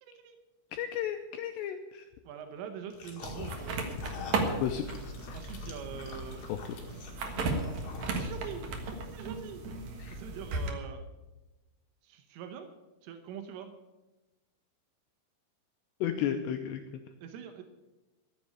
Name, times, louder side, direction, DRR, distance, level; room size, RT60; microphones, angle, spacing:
voice 1, 0.0-0.4 2.3-4.0 5.3-6.4 8.1-8.7 9.0-9.6 10.1-11.0 12.0-12.7 13.0-13.7 17.2-17.6, right 8 dB, 90° right, 6 dB, 3.6 m, -43 dB
voice 2, 0.7-2.0 4.6-4.9 5.3-5.4 6.5-6.6 10.0-10.2 16.0-16.8, left 10 dB, 80° left, 6 dB, 2.6 m, -33 dB
sound 1, 2.9-8.6, left 4 dB, 50° left, 2.5 m, -45 dB
sound 2, 3.2-10.7, right 3 dB, 65° right, 1.7 m, -36 dB
13.5 x 7.7 x 9.5 m, 1.1 s
omnidirectional pair, 5.6 m